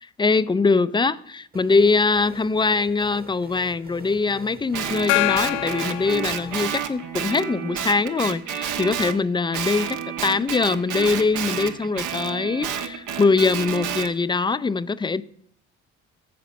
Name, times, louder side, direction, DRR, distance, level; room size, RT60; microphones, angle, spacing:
voice 1, 0.2-15.2, left 4 dB, 15° left, 0.5 m, -22 dB
sound 1, 1.5-6.7, right 3 dB, 25° right, 1.4 m, -45 dB
Guitar, 4.7-9.2 9.5-14.1, right 8 dB, 60° right, 1.2 m, -30 dB
Gong, 5.1-7.1, left 20 dB, 75° left, 0.5 m, -26 dB
14.5 x 5.1 x 6.0 m
hypercardioid pair, 55°, 35 cm